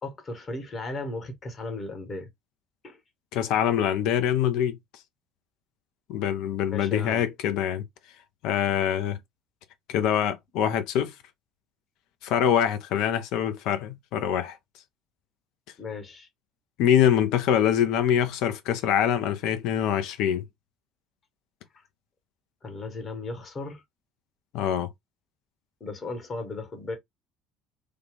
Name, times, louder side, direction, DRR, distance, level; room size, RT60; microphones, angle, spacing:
voice 1, 0.0-2.3 2.8-3.0 6.7-7.2 15.8-16.3 22.6-23.8 25.8-27.0, left 3 dB, 35° left, 1.2 m, -36 dB
voice 2, 3.3-4.8 6.1-7.8 8.4-9.2 9.9-11.1 12.2-14.6 16.8-20.4 24.5-24.9, left 9 dB, 55° left, 0.6 m, -24 dB
3.3 x 2.4 x 3.4 m
figure-of-eight pair, 60°, 0 cm